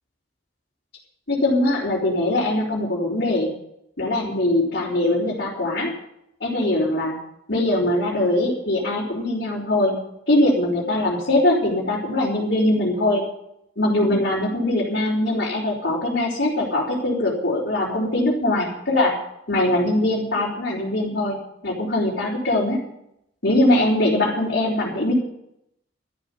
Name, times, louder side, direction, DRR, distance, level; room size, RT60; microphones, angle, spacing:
voice 1, 1.3-3.5 4.0-5.9 6.4-7.2 7.5-10.0 10.3-13.2 13.8-19.2 19.5-21.4 21.6-22.8 23.4-25.1, left 1 dB, 65° left, -7 dB, 4.0 m, -21 dB
13.0 x 8.3 x 9.9 m, 0.79 s
head